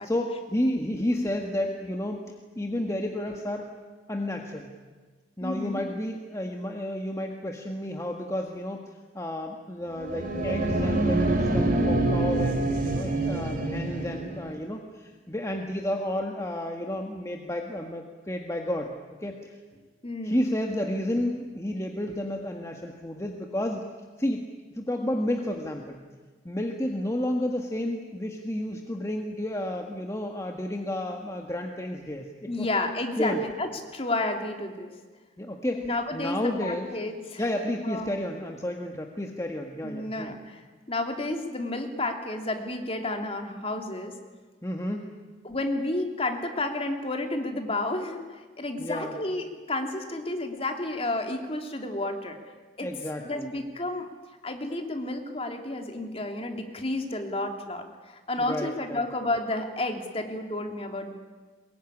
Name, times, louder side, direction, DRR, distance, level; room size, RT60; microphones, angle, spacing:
voice 1, 0.0-2.2 2.5-3.7 4.1-4.7 5.4-8.8 9.1-18.9 19.2-19.5 20.2-23.8 24.2-24.4 24.7-26.0 26.4-32.7 33.2-33.4 35.4-36.9 37.4-40.4 44.6-45.1 48.8-49.2 52.8-53.5 58.4-59.0, left 1 dB, 15° left, 2 dB, 1.6 m, -31 dB
voice 2, 5.4-5.8 20.0-20.4 32.5-34.9 35.8-37.4 37.9-38.2 39.8-40.6 40.9-44.1 45.4-52.4 52.8-52.9 53.2-54.1 54.4-57.8 58.3-61.1, left 2 dB, 35° left, 4 dB, 2.9 m, -31 dB
sound 1, 9.9-14.5, right 2 dB, 50° right, 4.2 m, -26 dB
23.0 x 22.0 x 9.9 m, 1.4 s
head